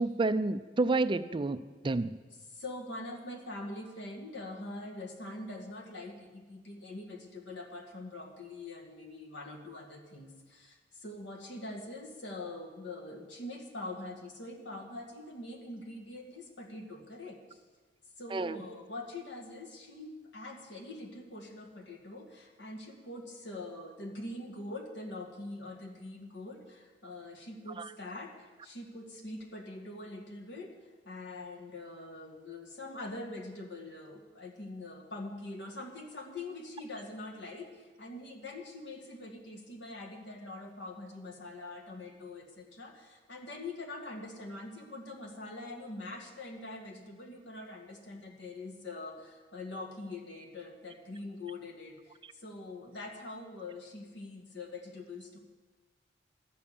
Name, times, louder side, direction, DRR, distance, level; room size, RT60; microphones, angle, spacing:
voice 1, 0.0-2.1 18.3-18.6 27.8-27.9, right 3 dB, 25° right, 12 dB, 0.4 m, -30 dB
voice 2, 2.5-17.6 18.2-30.8 31.1-55.4, left 2 dB, 80° left, 1 dB, 1.8 m, -44 dB
12.0 x 6.9 x 8.6 m, 1.4 s
head